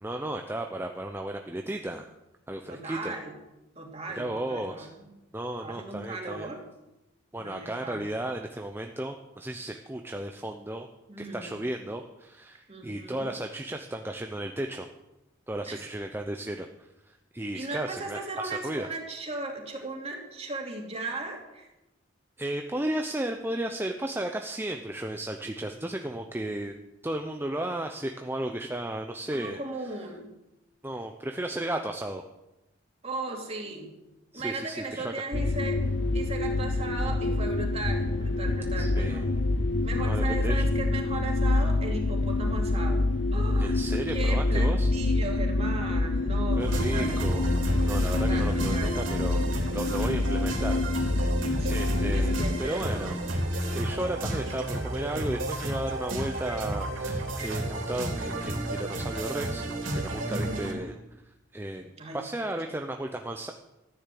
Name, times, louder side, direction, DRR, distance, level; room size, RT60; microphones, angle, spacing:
voice 1, 0.0-2.1 2.5-3.2 4.2-4.9 5.3-6.5 7.3-10.9 11.2-14.9 15.5-16.7 17.1-18.9 22.4-29.6 30.8-32.2 34.3-35.1 38.8-39.3 40.0-40.7 43.6-44.9 46.6-47.5 47.9-49.4 49.7-51.2 51.7-53.2 53.7-59.7 59.9-60.9 61.5-63.5, right 1 dB, 10° right, 4 dB, 0.7 m, -34 dB
voice 2, 2.7-3.3 3.8-5.1 5.6-6.6 7.4-8.0 11.1-11.6 12.7-13.4 15.7-15.9 17.5-21.7 29.3-30.3 33.0-33.9 34.3-35.8 36.1-39.3 39.8-43.7 44.1-47.2 48.1-49.0 51.6-53.2 60.3-61.0 62.0-62.2 62.7-62.8, right 2 dB, 30° right, 1 dB, 2.8 m, -37 dB
sound 1, 35.3-52.6, left 2 dB, 65° left, 0.7 m, -26 dB
sound 2, 46.6-60.7, right 1 dB, 80° right, 3.6 m, -31 dB
14.0 x 10.0 x 7.6 m, 0.95 s
head